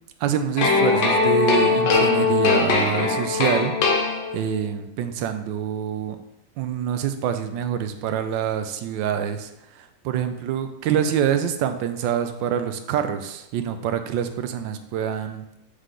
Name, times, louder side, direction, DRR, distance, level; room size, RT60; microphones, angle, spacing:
voice 1, 0.2-3.7 4.0-6.2 6.6-15.4, right 9 dB, 75° right, 9 dB, 1.2 m, -26 dB
sound 1, 0.6-4.7, left 4 dB, 90° left, 1.6 m, -20 dB
8.1 x 3.2 x 3.8 m, 0.83 s
omnidirectional pair, 2.1 m